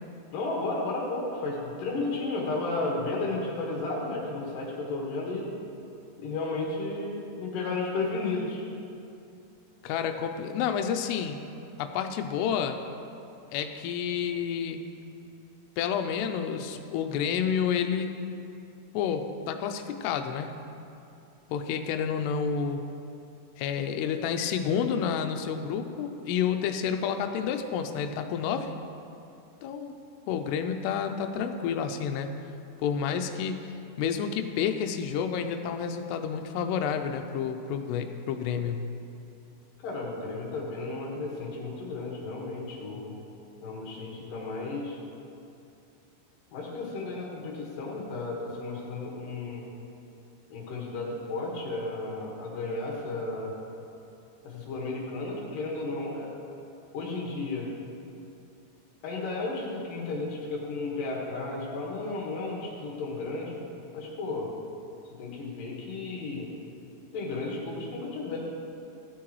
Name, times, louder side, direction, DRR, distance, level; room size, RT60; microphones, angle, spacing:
voice 1, 0.3-5.5 6.2-8.6 39.8-43.1 43.6-45.0 46.5-49.6 50.5-53.5 54.4-56.3 56.9-57.7 59.0-63.6 63.9-64.5 65.2-66.5 67.1-68.4, left 3 dB, 65° left, -3 dB, 3.0 m, -33 dB
voice 2, 9.8-11.4 11.8-12.8 13.5-14.8 15.8-18.2 18.9-20.5 21.5-22.8 23.6-28.7 29.6-30.0 30.3-32.3 32.8-33.7 34.0-38.9, left 7 dB, 85° left, 6 dB, 2.7 m, -29 dB
15.0 x 8.4 x 3.1 m, 2.7 s
omnidirectional pair, 4.7 m